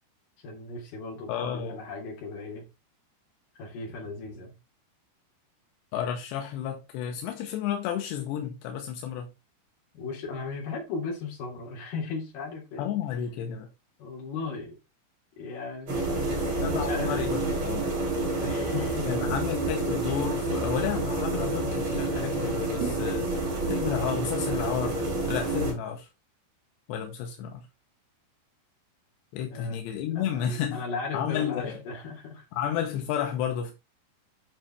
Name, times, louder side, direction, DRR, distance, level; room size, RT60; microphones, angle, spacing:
voice 1, 0.4-2.6 3.6-4.5 9.9-12.9 14.0-14.8 15.4-17.3 18.4-19.1 29.5-29.8 30.1-32.5, left 4 dB, 55° left, 4.3 m, -36 dB
voice 2, 1.3-1.8 5.9-9.3 12.8-13.7 16.6-17.4 17.6-17.9 19.1-23.3 23.7-26.1 26.9-27.6 29.3-30.8 31.1-31.8 32.5-33.7, left 9 dB, 85° left, 3.2 m, -31 dB
sound 1, 15.9-25.7, right 2 dB, 50° right, 5.6 m, -29 dB
10.0 x 5.7 x 3.4 m
omnidirectional pair, 4.8 m